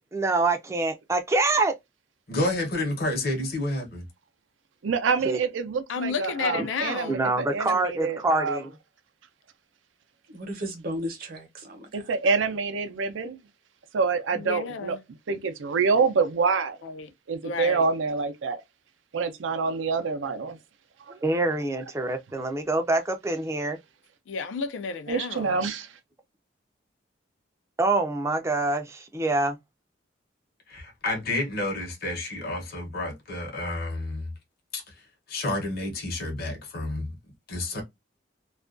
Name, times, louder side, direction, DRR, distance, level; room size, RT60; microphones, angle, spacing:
voice 1, 0.1-1.7 5.2-5.4 6.5-6.7 7.1-8.7 21.2-23.8 27.8-29.6, right 2 dB, 15° right, 0.4 m, -25 dB
voice 2, 2.3-4.1 30.7-34.3 34.7-34.8 35.3-37.2 37.5-37.8, left 2 dB, 55° left, 0.8 m, -30 dB
voice 3, 4.8-8.6 11.9-13.4 13.9-15.0 15.3-16.8 17.3-18.6 19.1-20.6 25.1-25.9, right 4 dB, 80° right, 0.5 m, -26 dB
voice 4, 5.9-7.2 14.3-15.0 16.8-17.1 17.4-17.8 24.3-25.6, left 5 dB, 80° left, 0.4 m, -32 dB
voice 5, 10.3-12.3, equal, 50° right, 0.8 m, -35 dB
2.4 x 2.2 x 2.4 m
head